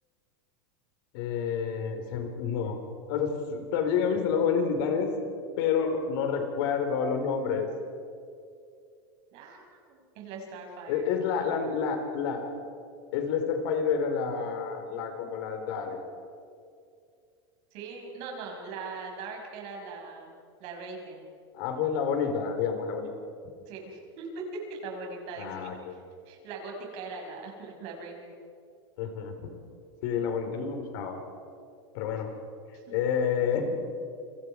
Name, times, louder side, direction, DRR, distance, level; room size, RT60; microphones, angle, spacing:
voice 1, 1.1-2.8 3.1-5.1 5.6-7.7 10.9-12.5 13.1-16.0 21.5-23.1 25.4-26.0 29.0-29.5 30.0-31.2 31.9-32.3 32.9-33.8, left 6 dB, 70° left, 5 dB, 4.5 m, -29 dB
voice 2, 9.3-11.1 17.7-20.3 20.6-21.3 23.6-26.0 26.3-28.3 32.7-32.8, right 3 dB, 55° right, 1 dB, 6.0 m, -40 dB
29.5 x 23.5 x 4.9 m, 2.3 s
supercardioid pair, 130°, 13 cm